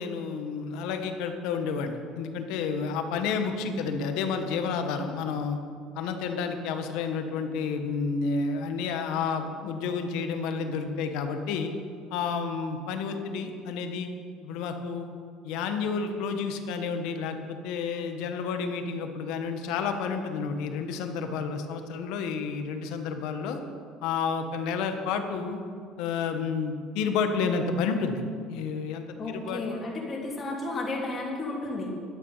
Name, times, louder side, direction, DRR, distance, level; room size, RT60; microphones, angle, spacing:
voice 1, 0.0-5.6 5.9-11.7 12.1-14.1 14.4-15.1 15.4-23.6 24.0-25.6 26.0-28.2 28.5-29.8, left 5 dB, 75° left, 6 dB, 1.3 m, -30 dB
voice 2, 29.2-31.9, left 2 dB, 30° left, -3 dB, 3.2 m, -33 dB
12.0 x 9.8 x 5.7 m, 2.2 s
supercardioid pair, 105°, 0 cm